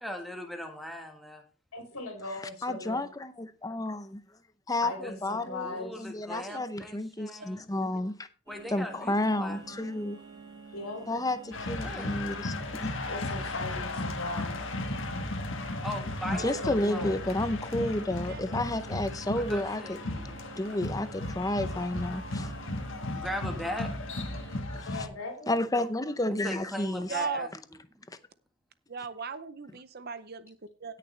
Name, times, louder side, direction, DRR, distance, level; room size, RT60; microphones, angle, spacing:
voice 1, 0.0-1.4 5.0-5.1 5.6-7.7 8.5-9.6 11.8-12.2 15.8-16.6 16.9-17.1 19.5-20.4 23.1-23.9 26.3-27.5 28.0-28.1, left 1 dB, ahead, 1.5 m, -39 dB
voice 2, 1.7-3.0 4.8-6.1 10.7-11.1 13.1-14.7 16.4-17.2 24.8-25.5, left 2 dB, 85° left, 2.9 m, -39 dB
voice 3, 2.6-4.2 4.7-8.3 8.7-10.2 11.1-12.9 14.2-14.4 16.3-20.0 20.6-22.5 24.7-25.1 25.5-27.2, left 1 dB, 15° left, 0.6 m, -31 dB
sound 1, 8.5-24.6, right 5 dB, 20° right, 6.7 m, -49 dB
sound 2, 11.5-25.1, left 2 dB, 60° left, 1.5 m, -35 dB
voice 4, 16.3-16.6 18.3-18.4 27.1-27.5 28.9-30.4 30.8-30.9, right 5 dB, 45° right, 0.6 m, -36 dB
17.5 x 6.7 x 3.2 m
head